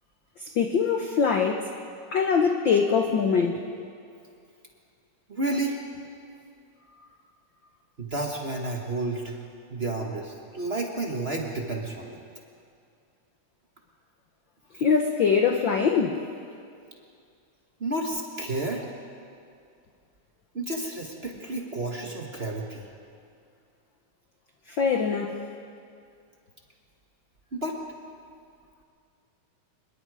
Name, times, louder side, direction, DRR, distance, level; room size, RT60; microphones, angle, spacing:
voice 1, 0.4-1.7 2.1-3.6 14.7-16.2 24.7-25.4, left 6 dB, 85° left, 4 dB, 1.0 m, -23 dB
voice 2, 5.3-5.8 8.0-9.4 9.7-12.2 17.8-18.9 20.5-22.9 27.5-27.8, right 2 dB, 45° right, 1 dB, 0.7 m, -31 dB
25.0 x 21.5 x 4.9 m, 2.4 s
omnidirectional pair, 3.5 m